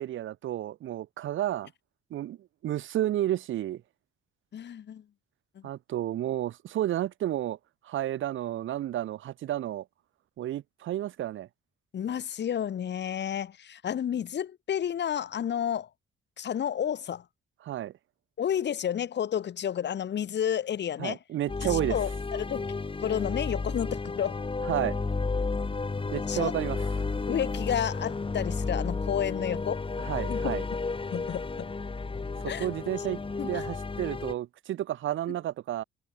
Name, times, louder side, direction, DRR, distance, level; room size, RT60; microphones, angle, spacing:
voice 1, 0.0-1.7 2.1-2.4 2.6-3.8 5.6-7.6 7.8-9.8 10.4-11.5 17.6-17.9 21.0-22.0 24.7-25.0 26.1-26.8 30.0-30.7 32.4-35.8, right 12 dB, 80° right, 5.7 m, -31 dB
voice 2, 4.5-5.0 5.6-5.7 11.9-15.9 16.4-17.2 18.4-21.2 21.6-22.7 23.0-24.4 26.3-26.5 27.3-29.8 30.3-30.5 31.1-31.7 32.5-32.7 33.4-33.6 35.3-35.4, left 9 dB, 60° left, 7.2 m, -31 dB
sound 1, 21.5-34.3, left 4 dB, 25° left, 6.7 m, -32 dB
cardioid pair, 90°, 20 cm